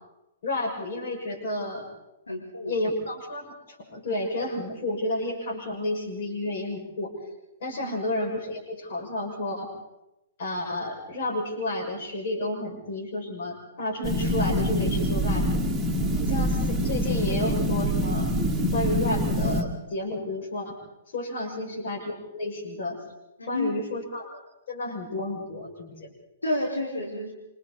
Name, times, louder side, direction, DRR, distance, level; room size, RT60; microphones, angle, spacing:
voice 1, 0.4-1.9 2.7-7.1 7.6-9.7 10.4-15.6 16.2-18.3 18.7-20.8 21.1-23.0 23.5-24.4 24.7-26.1, left 1 dB, 50° left, 1 dB, 6.1 m, -31 dB
voice 2, 2.3-2.7 7.7-7.9 21.4-21.6 23.4-23.7 26.4-27.3, left 1 dB, 75° left, -3 dB, 4.8 m, -30 dB
sound 1, 14.0-19.6, equal, 5° right, 2.3 m, -25 dB
27.5 x 25.5 x 4.1 m, 0.91 s
figure-of-eight pair, 115°, 0 cm